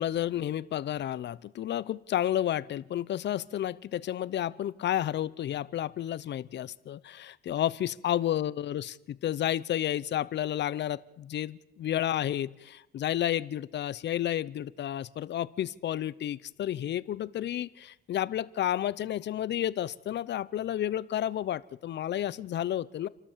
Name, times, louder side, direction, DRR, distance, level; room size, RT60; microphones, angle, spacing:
voice 1, 0.0-23.1, left 11 dB, 60° left, 20 dB, 0.7 m, -31 dB
29.0 x 12.0 x 7.3 m, 0.98 s
cardioid pair, 90°, 20 cm